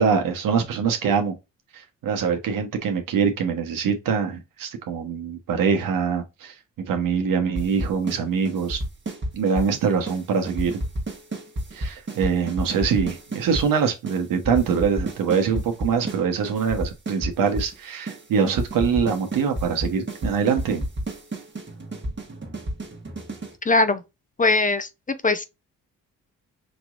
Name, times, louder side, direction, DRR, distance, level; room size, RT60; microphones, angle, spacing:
voice 1, 0.0-1.3 2.0-6.5 6.9-8.8 9.3-10.8 11.7-20.8, right 6 dB, 70° right, 1.1 m, -23 dB
sound 1, 7.5-8.2 8.4-9.7 10.1-10.2 10.5-13.7 14.1-14.2 14.4-16.2 16.4-17.7 18.1-18.2 18.5-23.5, right 1 dB, 35° right, 1.3 m, -30 dB
voice 2, 23.7-24.0 24.4-25.4, left 3 dB, 25° left, 0.5 m, -21 dB
5.1 x 3.1 x 2.4 m
supercardioid pair, 55°, 34 cm